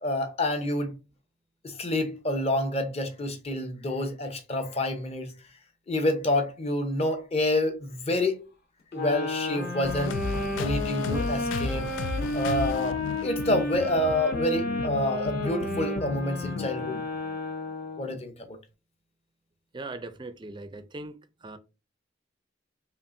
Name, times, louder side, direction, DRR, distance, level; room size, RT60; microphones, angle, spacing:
voice 1, 0.0-0.9 1.6-5.3 5.9-8.4 8.9-10.2 10.6-11.9 12.3-17.0 18.0-18.6, left 1 dB, 30° left, 0.7 m, -28 dB
sound 1, 8.9-18.1, left 2 dB, 50° left, 1.1 m, -32 dB
sound 2, 9.8-17.4, left 4 dB, 75° left, 0.3 m, -34 dB
voice 2, 19.7-21.6, right 2 dB, 25° right, 0.4 m, -40 dB
5.3 x 2.4 x 2.5 m
head